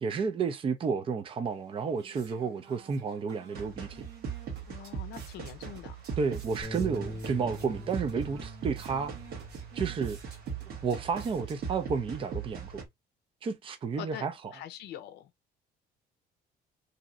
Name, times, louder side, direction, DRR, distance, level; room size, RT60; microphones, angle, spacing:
voice 1, 0.0-4.0 6.2-9.1 9.7-10.2 10.8-12.8 13.4-14.3, right 5 dB, 30° right, 0.5 m, -31 dB
sound 1, 1.5-12.0, right 6 dB, 80° right, 1.3 m, -54 dB
sound 2, 3.5-12.8, right 7 dB, 65° right, 1.1 m, -39 dB
voice 2, 4.7-6.1 14.0-14.3 14.5-15.3, left 11 dB, 80° left, 0.5 m, -44 dB
Bass guitar, 6.6-11.1 11.5-12.9, left 1 dB, 25° left, 0.9 m, -45 dB
3.0 x 2.7 x 2.5 m
cardioid pair, 110°, 17 cm